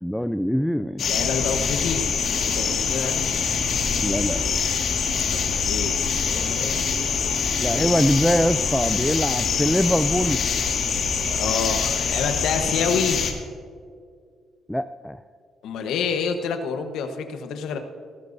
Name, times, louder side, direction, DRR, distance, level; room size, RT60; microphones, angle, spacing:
voice 1, 0.0-1.0 4.0-4.4 7.6-10.4 14.7-15.2, equal, ahead, 11 dB, 0.4 m, -23 dB
voice 2, 1.0-3.3 5.3-6.9 7.2-7.3 11.3-13.4 15.6-17.8, left 5 dB, 85° left, 7 dB, 1.1 m, -28 dB
sound 1, 1.0-13.3, left 5 dB, 65° left, 2.0 m, -24 dB
19.0 x 14.5 x 2.7 m, 2.1 s
cardioid pair, 90°, 0 cm